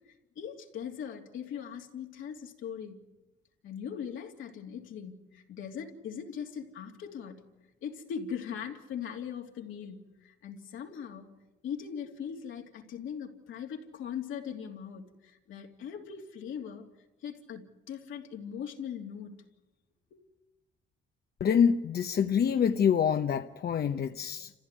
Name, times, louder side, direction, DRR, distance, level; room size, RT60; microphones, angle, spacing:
voice 1, 0.3-3.1 3.6-7.5 7.8-11.3 11.6-16.9 17.2-19.4 20.1-20.2, left 7 dB, 80° left, 3.0 m, -40 dB
voice 2, 21.4-24.5, left 7 dB, 50° left, 0.9 m, -26 dB
28.5 x 15.5 x 9.7 m
cardioid pair, 90°, 20 cm